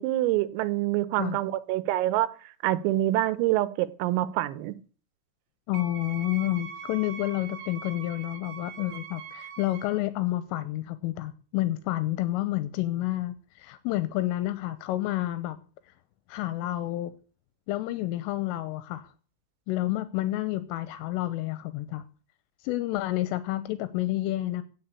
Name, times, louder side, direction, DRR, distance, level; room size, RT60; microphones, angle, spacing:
voice 1, 0.0-2.3 2.6-4.7, right 15 dB, 90° right, 3.5 m, -26 dB
voice 2, 5.7-15.6 16.3-17.1 17.7-19.1 19.7-22.0 22.6-24.6, left 15 dB, 80° left, 3.3 m, -29 dB
Wind instrument woodwind instrument, 5.7-10.0, right 7 dB, 70° right, 3.4 m, -42 dB
16.5 x 7.2 x 8.3 m
omnidirectional pair, 5.8 m